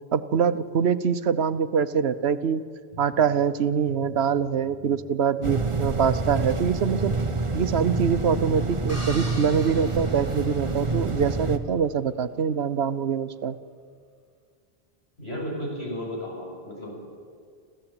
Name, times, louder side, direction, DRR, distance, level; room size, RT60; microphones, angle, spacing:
voice 1, 0.1-2.6 3.0-7.1 7.5-13.6, right 7 dB, 80° right, 12 dB, 1.1 m, -24 dB
sound 1, 2.9-5.0 5.3-5.4 6.0-6.1 6.5-8.4, left 1 dB, 55° left, 2.3 m, -45 dB
sound 2, 5.4-11.6, right 3 dB, 30° right, 1.1 m, -28 dB
sound 3, 8.9-11.1, equal, 15° right, 6.3 m, -41 dB
voice 2, 15.2-17.3, equal, 80° left, -2 dB, 7.0 m, -34 dB
27.5 x 14.5 x 8.9 m, 2.2 s
omnidirectional pair, 1.1 m